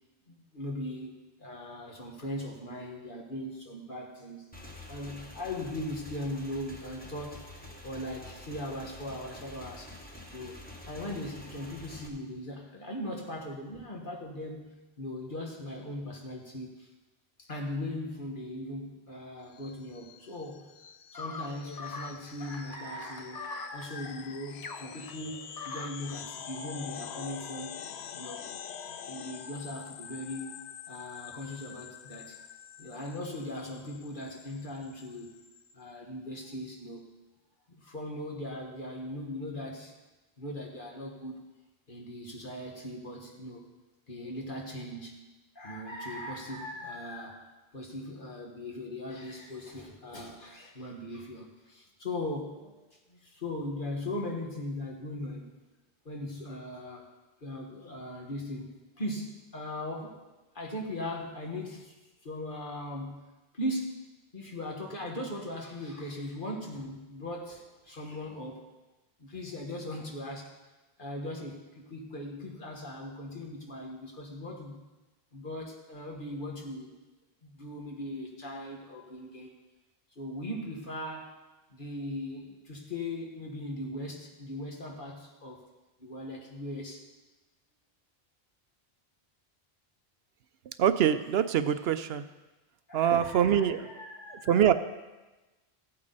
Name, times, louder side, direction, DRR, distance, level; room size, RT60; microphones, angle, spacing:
voice 1, 0.3-1.1 1.4-4.5 4.9-7.5 7.8-9.9 10.3-10.6 10.8-16.9 17.4-20.7 21.1-27.7 28.1-28.5 29.1-30.6 30.9-32.4 32.8-35.4 35.7-37.1 37.7-39.9 40.4-41.4 41.9-43.7 44.1-45.2 45.5-52.7 53.1-55.5 56.0-57.1 57.4-60.2 60.5-61.9 62.2-63.2 63.5-64.0 64.3-68.7 69.2-70.5 71.0-74.8 75.3-76.9 77.4-79.5 80.1-81.4 81.7-85.6 86.0-87.1 92.9-94.6, left 1 dB, 55° left, 0 dB, 1.9 m, -39 dB
Motorcycle / Engine, 4.5-12.1, left 1 dB, 10° left, 1.2 m, -47 dB
sound 1, 19.5-35.7, left 8 dB, 80° left, 0.9 m, -46 dB
sound 2, 21.1-26.2, left 4 dB, 35° left, 0.3 m, -43 dB
voice 2, 90.8-92.3 92.9-93.9 94.3-94.7, right 9 dB, 75° right, 11 dB, 0.8 m, -24 dB
15.5 x 8.5 x 4.0 m, 1.1 s
omnidirectional pair, 1.1 m